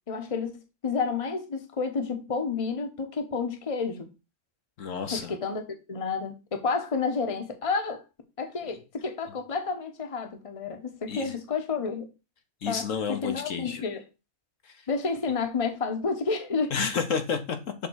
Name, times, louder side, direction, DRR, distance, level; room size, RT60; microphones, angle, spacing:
voice 1, 0.1-0.5 0.8-4.1 5.1-5.6 5.9-8.0 8.4-12.1 12.7-12.8 13.1-14.0 14.9-16.7, left 4 dB, 25° left, 1.0 m, -30 dB
voice 2, 4.8-5.4 11.1-11.4 12.6-13.8 14.6-14.7 16.7-17.6, left 6 dB, 65° left, 1.3 m, -30 dB
6.9 x 3.7 x 6.3 m
omnidirectional pair, 1.5 m